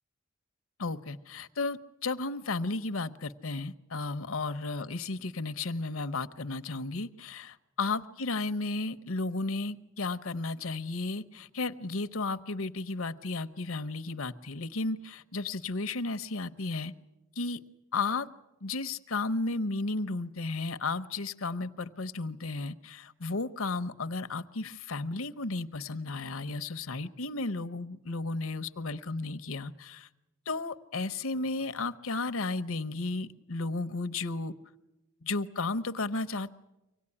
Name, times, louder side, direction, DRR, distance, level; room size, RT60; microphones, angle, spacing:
voice 1, 0.8-16.9 17.4-17.6 17.9-18.3 18.6-30.1 30.5-34.5 35.2-36.5, left 3 dB, 65° left, 12 dB, 0.9 m, -34 dB
25.0 x 17.5 x 9.8 m, 0.99 s
head